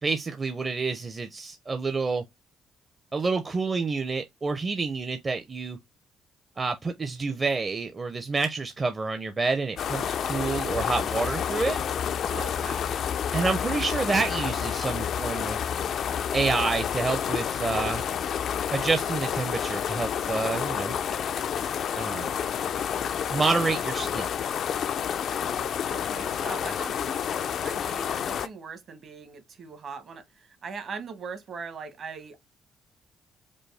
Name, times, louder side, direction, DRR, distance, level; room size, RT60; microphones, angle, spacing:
voice 1, 0.0-2.2 3.1-5.8 6.6-11.8 13.3-15.6 16.3-18.0 18.7-20.9 22.0-22.3 23.3-24.3, right 4 dB, 30° right, 0.6 m, -28 dB
sound 1, 9.8-28.5, left 8 dB, 65° left, 0.4 m, -29 dB
voice 2, 12.3-13.0 25.8-32.5, right 5 dB, 55° right, 1.2 m, -41 dB
5.2 x 2.0 x 3.3 m
cardioid pair, 85°, 0 cm